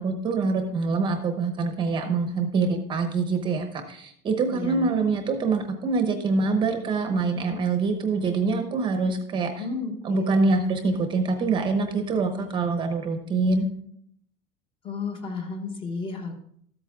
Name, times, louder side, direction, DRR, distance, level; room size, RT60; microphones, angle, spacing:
voice 1, 0.0-9.7 10.0-13.7, right 4 dB, 25° right, 6 dB, 0.9 m, -25 dB
voice 2, 4.5-5.0 9.6-10.6 14.8-16.4, left 4 dB, 25° left, 4 dB, 1.3 m, -33 dB
13.5 x 8.5 x 3.6 m, 0.68 s
cardioid pair, 175°, 20 cm